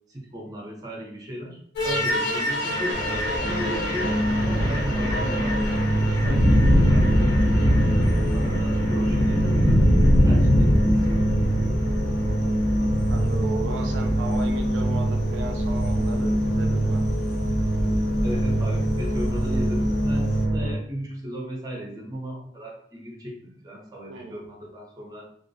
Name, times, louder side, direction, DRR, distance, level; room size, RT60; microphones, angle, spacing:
voice 1, 0.1-3.0 3.4-4.1 4.4-9.8 10.2-12.0 18.2-25.3, equal, 20° right, -2 dB, 0.6 m, -36 dB
sound 1, 1.8-20.8, equal, 80° left, 1.2 m, -25 dB
Thunder, 2.9-20.4, equal, 40° left, 0.5 m, -24 dB
voice 2, 13.1-17.0 24.1-24.4, right 3 dB, 85° right, 4 dB, 0.3 m, -35 dB
2.3 x 2.1 x 2.6 m, 0.63 s
head